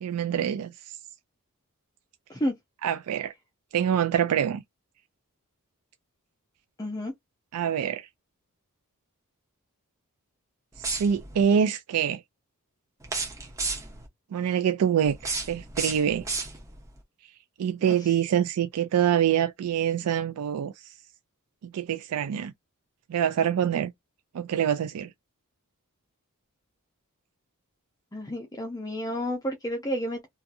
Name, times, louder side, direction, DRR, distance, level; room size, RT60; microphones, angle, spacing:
voice 1, 0.0-0.7 2.8-3.3 3.7-4.6 7.5-8.1 11.0-12.2 14.3-16.2 17.6-20.7 21.7-22.5 23.1-23.9 24.3-25.1, right 8 dB, 85° right, 0.3 m, -25 dB
voice 2, 6.8-7.1 17.8-18.2 28.1-30.3, equal, 15° left, 0.5 m, -31 dB
sound 1, 10.7-11.4 13.0-14.1 15.0-16.9, right 3 dB, 15° right, 0.8 m, -33 dB
2.6 x 2.3 x 2.4 m
head